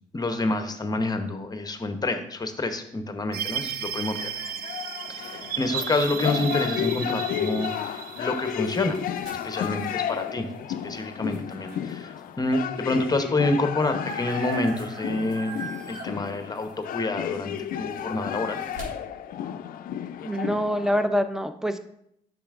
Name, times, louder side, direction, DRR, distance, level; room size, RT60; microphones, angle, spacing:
voice 1, 0.1-4.3 5.1-9.0 9.4-10.5 10.8-15.6 15.9-18.6, left 2 dB, 25° left, 7 dB, 0.8 m, -28 dB
sound 1, 3.3-9.6, right 9 dB, 85° right, 0.4 m, -35 dB
sound 2, 3.6-12.0 12.6-12.7 12.9-18.8, right 3 dB, 65° right, 2.7 m, -45 dB
sound 3, 4.2-21.1, left 10 dB, 70° left, 0.4 m, -33 dB
voice 2, 20.2-21.8, equal, 5° right, 9 dB, 0.6 m, -25 dB
8.5 x 6.2 x 2.4 m, 0.73 s
supercardioid pair, 65°, 15 cm